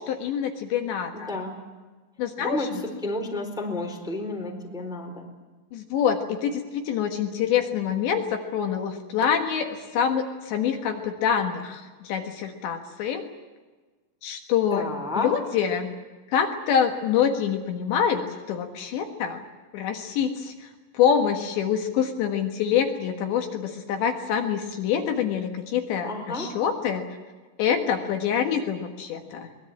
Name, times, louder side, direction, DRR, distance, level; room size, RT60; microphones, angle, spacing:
voice 1, 0.0-1.3 2.2-2.7 5.7-13.3 14.2-14.9 15.1-15.9 16.3-19.4 19.7-27.1 27.6-29.5, left 8 dB, 70° left, 4 dB, 3.6 m, -26 dB
voice 2, 1.1-1.5 2.4-5.3 14.7-15.3 26.0-26.5, left 2 dB, ahead, 2 dB, 3.1 m, -31 dB
24.0 x 21.5 x 8.7 m, 1.3 s
omnidirectional pair, 5.8 m